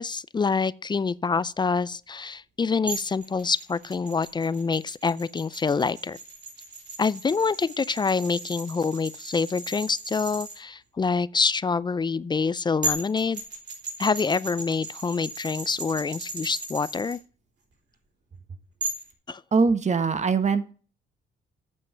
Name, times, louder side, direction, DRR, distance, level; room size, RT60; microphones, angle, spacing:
voice 1, 0.0-6.2 7.0-13.4 14.0-17.2 19.3-19.4, left 5 dB, 25° left, 0.4 m, -26 dB
sound 1, 2.9-10.6 12.4-12.5 12.8-17.2 18.8-19.1, right 2 dB, 60° right, 4.0 m, -37 dB
voice 2, 19.5-20.7, right 5 dB, 35° right, 1.1 m, -22 dB
8.5 x 5.3 x 6.7 m
cardioid pair, 90°, 20 cm